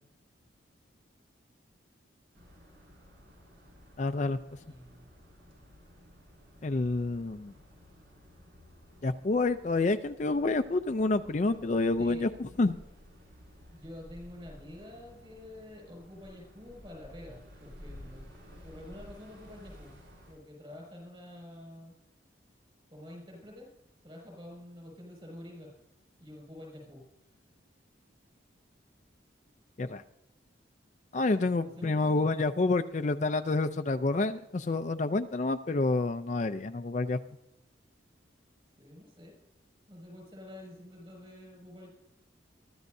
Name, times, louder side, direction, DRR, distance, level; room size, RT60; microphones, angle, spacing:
sound 1, 2.3-20.3, left 1 dB, 85° right, 6.2 m, -54 dB
voice 1, 4.0-4.4 6.6-7.5 9.0-12.8 29.8-30.0 31.1-37.2, left 3 dB, 40° left, 9 dB, 0.4 m, -28 dB
voice 2, 4.6-5.0 12.0-12.3 13.7-18.3 18.6-19.9 20.3-22.0 22.9-23.7 24.0-25.7 26.2-27.0 31.4-32.3 38.8-39.3 39.9-41.9, left 1 dB, 25° right, 0 dB, 6.2 m, -48 dB
22.5 x 13.5 x 2.7 m, 0.89 s
head